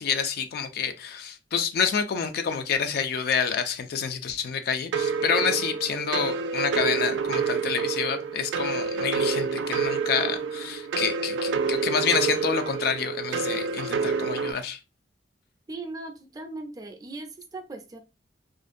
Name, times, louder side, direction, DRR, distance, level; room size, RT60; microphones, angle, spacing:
voice 1, 0.0-14.8, left 6 dB, 60° left, 0.3 m, -28 dB
sound 1, 4.9-14.5, right 5 dB, 90° right, 0.3 m, -28 dB
voice 2, 15.7-18.0, right 2 dB, 20° right, 0.4 m, -38 dB
2.5 x 2.1 x 2.5 m
head